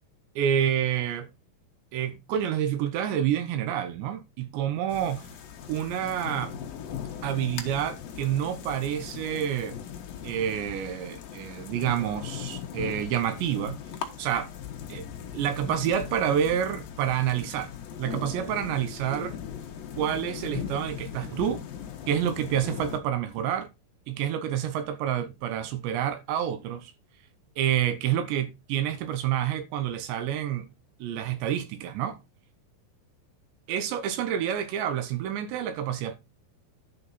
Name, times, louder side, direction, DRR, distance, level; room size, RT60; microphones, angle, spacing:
voice 1, 0.4-1.3 1.9-5.3 5.7-6.5 7.2-9.8 10.2-13.8 14.2-14.5 14.9-15.1 15.3-17.7 18.0-19.4 20.0-21.6 22.1-23.7 24.1-26.9 27.6-30.7 31.0-32.2 33.7-36.2, right 10 dB, 75° right, 3.0 m, -28 dB
sound 1, 4.9-23.0, left 8 dB, 65° left, 2.5 m, -39 dB
11.0 x 5.8 x 4.1 m
omnidirectional pair, 5.6 m